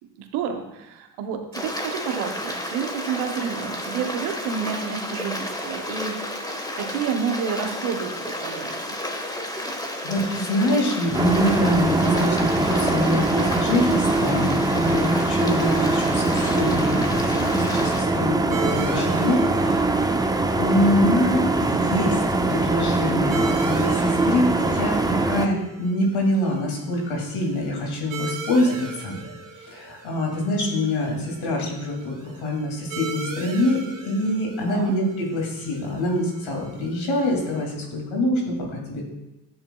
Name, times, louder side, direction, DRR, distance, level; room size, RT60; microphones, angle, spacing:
voice 1, 0.2-6.2 6.8-8.1 8.4-8.7 19.6-20.2 34.7-34.9, right 7 dB, 85° right, 6 dB, 0.9 m, -29 dB
Stream, 1.5-18.0, left 1 dB, 10° left, 1.3 m, -32 dB
voice 2, 9.2-9.8 10.0-20.1 20.6-29.2 29.6-39.0, left 1 dB, 70° left, 0 dB, 2.5 m, -25 dB
sound 1, 11.1-25.5, right 2 dB, 10° right, 0.6 m, -22 dB
sound 2, 18.5-37.7, right 4 dB, 40° right, 1.5 m, -39 dB
10.5 x 7.8 x 2.3 m, 0.95 s
hypercardioid pair, 50°, 48 cm